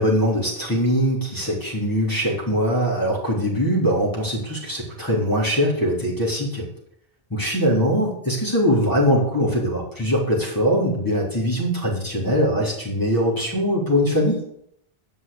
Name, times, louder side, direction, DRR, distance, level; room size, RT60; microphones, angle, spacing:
voice 1, 0.0-6.7 7.3-14.5, equal, 20° left, -4 dB, 3.8 m, -22 dB
9.1 x 6.2 x 8.6 m, 0.71 s
omnidirectional pair, 1.0 m